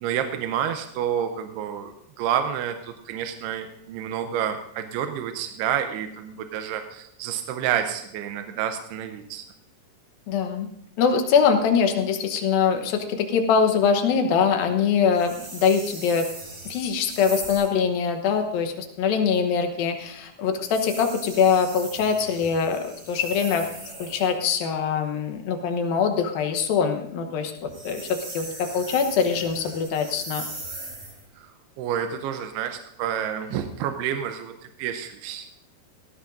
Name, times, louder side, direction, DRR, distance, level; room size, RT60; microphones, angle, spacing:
voice 1, 0.0-1.9 2.2-9.5 31.4-31.5 31.8-34.5 34.8-35.5, right 9 dB, 80° right, 6 dB, 2.5 m, -29 dB
voice 2, 10.3-10.7 11.0-16.3 16.7-23.7 24.0-30.4, left 6 dB, 70° left, 6 dB, 2.4 m, -23 dB
sound 1, 15.1-17.8 20.5-24.4 27.6-31.3, right 2 dB, 30° right, 3.2 m, -39 dB
17.5 x 16.0 x 2.6 m, 0.77 s
omnidirectional pair, 5.1 m